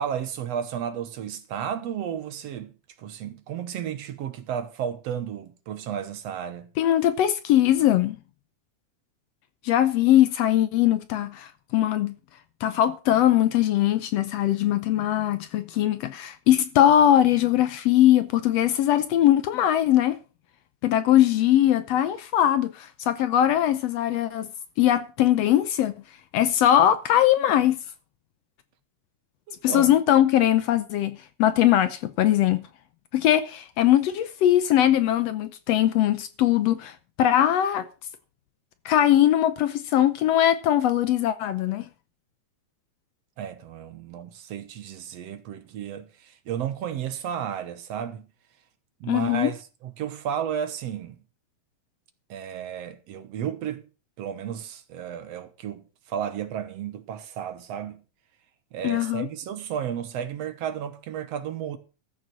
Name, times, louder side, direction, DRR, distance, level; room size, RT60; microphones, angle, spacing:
voice 1, 0.0-6.7 29.5-30.0 43.4-48.3 49.0-51.2 52.3-53.8 54.2-58.0 58.7-61.8, right 9 dB, 65° right, 2.0 m, -33 dB
voice 2, 6.8-8.2 9.6-12.1 12.6-20.2 20.8-24.5 24.8-25.9 26.3-27.8 29.6-32.6 33.1-36.9 37.2-37.9 38.8-41.9 49.1-49.5 58.8-59.3, left 12 dB, 70° left, 1.7 m, -21 dB
14.0 x 6.6 x 6.2 m
omnidirectional pair, 3.4 m